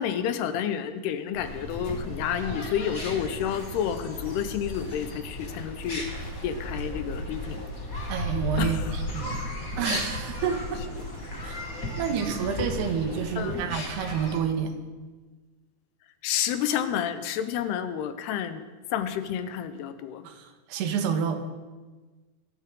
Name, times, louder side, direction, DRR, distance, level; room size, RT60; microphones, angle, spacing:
voice 1, 0.0-6.1 6.4-7.6 8.6-8.8 13.4-13.7 16.2-18.6 18.9-20.2, left 9 dB, 85° left, 10 dB, 2.9 m, -30 dB
sound 1, 1.3-14.4, left 1 dB, 30° left, 1.8 m, -35 dB
voice 2, 8.1-10.8 11.4-14.8 20.2-21.4, right 7 dB, 90° right, 5 dB, 3.4 m, -29 dB
21.5 x 13.0 x 3.8 m, 1.3 s
omnidirectional pair, 4.6 m